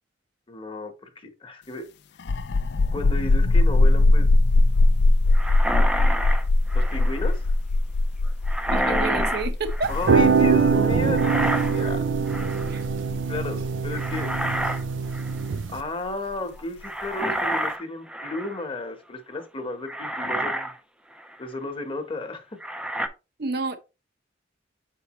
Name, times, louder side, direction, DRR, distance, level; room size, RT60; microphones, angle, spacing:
voice 1, 0.5-1.9 2.9-4.3 6.7-7.5 9.9-12.0 13.3-14.3 15.7-20.7 21.4-22.5, left 2 dB, 30° left, 1.1 m, -33 dB
sound 1, 2.2-15.6, left 2 dB, 65° left, 0.4 m, -21 dB
sound 2, 5.3-7.3 8.5-10.2 11.1-11.9 12.3-12.8 13.9-14.8 15.1-15.4 16.8-18.7 19.4-19.5 19.9-20.8 21.2-21.3 22.6-23.1, right 1 dB, 5° right, 0.5 m, -29 dB
voice 2, 8.7-9.9 12.7-12.8 23.4-23.8, right 3 dB, 60° right, 0.9 m, -29 dB
sound 3, 9.8-15.8, right 5 dB, 80° right, 0.5 m, -23 dB
6.8 x 4.6 x 3.0 m
head